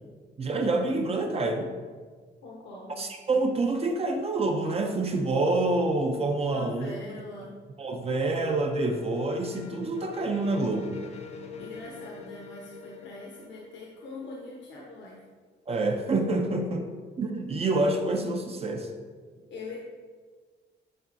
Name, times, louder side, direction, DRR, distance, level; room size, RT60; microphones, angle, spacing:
voice 1, 0.4-1.7 3.0-6.9 7.8-11.0 15.7-16.9 17.2-18.9, right 2 dB, 30° right, 3 dB, 0.6 m, -27 dB
voice 2, 2.4-3.0 6.5-7.5 11.6-15.3 19.5-19.8, left 2 dB, 75° left, -3 dB, 1.1 m, -42 dB
sound 1, 7.6-15.2, left 4 dB, 35° left, 0.5 m, -45 dB
8.7 x 5.4 x 2.7 m, 1.5 s
cardioid pair, 150°, 19 cm